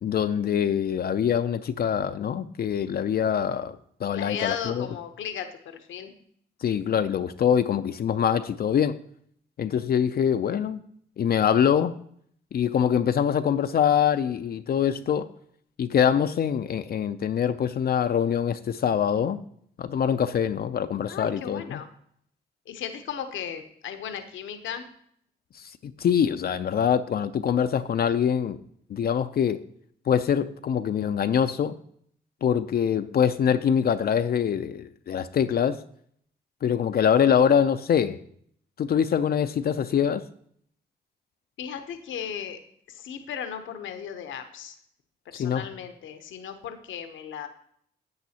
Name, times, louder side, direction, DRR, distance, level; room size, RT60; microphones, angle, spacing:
voice 1, 0.0-4.9 6.6-9.0 9.6-10.8 11.2-11.9 12.5-15.3 15.8-19.4 19.8-21.8 25.5-28.6 28.9-29.7 30.1-31.7 32.4-35.8 36.6-38.2 38.8-40.2 45.3-45.7, left 8 dB, 50° left, 0.5 m, -24 dB
voice 2, 4.1-6.1 21.1-21.9 22.7-24.8 41.6-42.6 42.9-44.8 45.3-47.5, left 8 dB, 70° left, 0.8 m, -36 dB
10.5 x 7.9 x 2.8 m
supercardioid pair, 50°, 20 cm